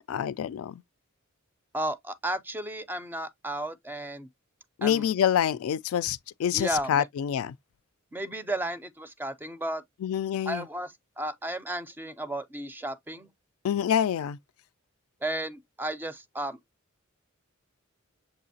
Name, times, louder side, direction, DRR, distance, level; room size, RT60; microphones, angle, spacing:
voice 1, 0.1-0.8 4.8-7.5 10.0-10.7 13.6-14.4, left 9 dB, 85° left, 0.3 m, -27 dB
voice 2, 1.7-4.3 4.8-5.1 6.5-7.1 8.1-9.8 10.5-13.3 15.2-16.6, right 1 dB, 10° right, 0.4 m, -33 dB
6.8 x 2.8 x 2.7 m
head